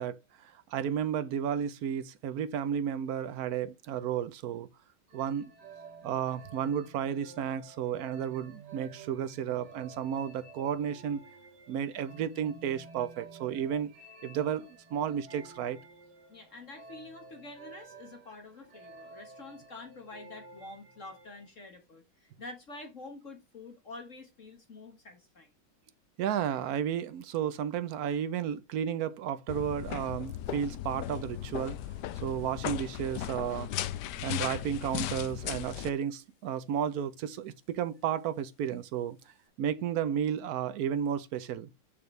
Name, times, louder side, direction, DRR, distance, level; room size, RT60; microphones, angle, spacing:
voice 1, 0.0-4.7 5.1-5.5 6.0-11.2 11.7-13.9 14.2-15.8 26.2-31.8 32.2-33.7 34.2-41.7, right 9 dB, 80° right, 0.8 m, -33 dB
sound 1, 5.1-21.5, right 3 dB, 50° right, 2.3 m, -52 dB
voice 2, 16.3-25.5, left 2 dB, 40° left, 1.5 m, -47 dB
sound 2, 29.5-35.9, left 12 dB, 70° left, 1.0 m, -37 dB
6.7 x 5.4 x 3.2 m
omnidirectional pair, 2.3 m